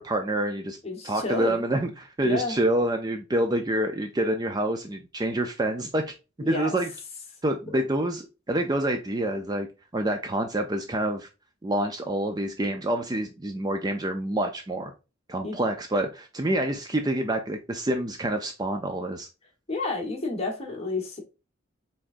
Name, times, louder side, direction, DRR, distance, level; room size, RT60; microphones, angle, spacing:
voice 1, 0.0-0.8 1.0-6.0 6.4-6.9 7.4-9.7 9.9-11.3 11.6-14.9 15.3-19.3, right 1 dB, 20° right, 0.4 m, -27 dB
voice 2, 0.8-1.6 2.2-2.6 6.4-6.8 7.7-7.8 15.4-15.6 19.7-21.2, left 3 dB, 30° left, 1.3 m, -30 dB
4.9 x 3.5 x 2.5 m
head